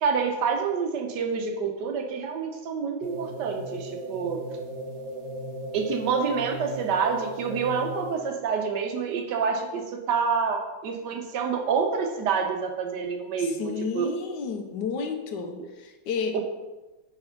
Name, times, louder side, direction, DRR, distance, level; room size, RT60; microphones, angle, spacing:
voice 1, 0.0-4.4 5.7-9.8 10.1-14.1, right 5 dB, 65° right, 3 dB, 1.2 m, -27 dB
sound 1, 3.0-8.4, right 1 dB, 80° right, 1.5 m, -37 dB
voice 2, 13.4-16.4, left 5 dB, 70° left, 5 dB, 1.1 m, -31 dB
4.7 x 4.3 x 5.7 m, 1.1 s
omnidirectional pair, 2.3 m